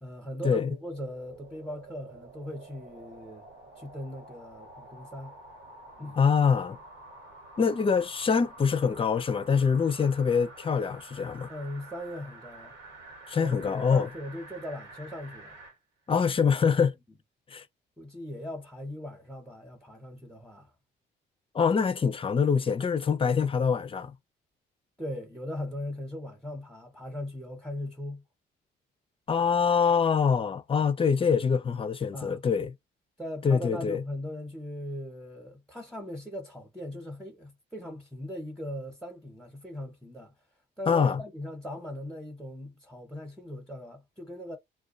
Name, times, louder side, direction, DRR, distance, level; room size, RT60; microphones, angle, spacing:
voice 1, 0.0-3.5 3.8-5.3 6.0-6.2 11.5-12.8 13.4-15.6 18.0-20.7 25.0-28.2 32.1-32.4 33.2-40.3 40.8-44.6, left 1 dB, ahead, 0.9 m, -39 dB
sound 1, 0.8-15.8 16.2-16.3, right 2 dB, 80° right, 1.3 m, -49 dB
voice 2, 6.2-6.8 7.6-11.5 13.3-14.1 16.1-16.9 17.5-17.6 21.5-24.1 29.3-32.7 33.4-34.0 40.9-41.2, left 6 dB, 25° left, 0.4 m, -25 dB
2.3 x 2.2 x 2.5 m
cardioid pair, 90°, 20 cm